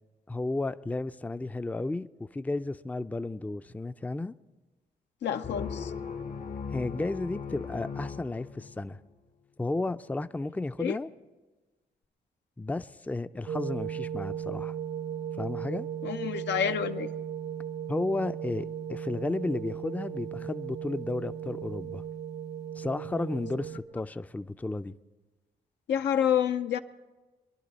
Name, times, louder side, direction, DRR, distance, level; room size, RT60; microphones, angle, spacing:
voice 1, 0.3-4.3 6.7-9.0 9.6-11.1 12.6-14.7 15.4-15.9 17.9-22.0 22.8-24.9, left 2 dB, 10° left, 0.4 m, -33 dB
voice 2, 5.2-5.9 10.8-11.0 16.0-17.1 25.9-26.8, left 9 dB, 80° left, 0.6 m, -28 dB
sound 1, 5.4-9.0, left 6 dB, 50° left, 0.8 m, -38 dB
sound 2, 13.5-23.8, right 9 dB, 65° right, 0.9 m, -36 dB
23.0 x 11.0 x 4.1 m
cardioid pair, 60°, 18 cm